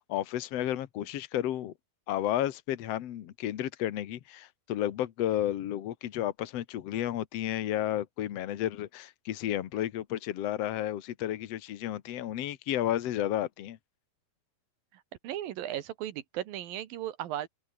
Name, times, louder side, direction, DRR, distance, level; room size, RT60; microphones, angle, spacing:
voice 1, 0.0-1.7 2.1-13.8, left 12 dB, 80° left, 1.4 m, -32 dB
voice 2, 14.9-17.5, right 12 dB, 65° right, 2.9 m, -36 dB
omnidirectional pair, 4.7 m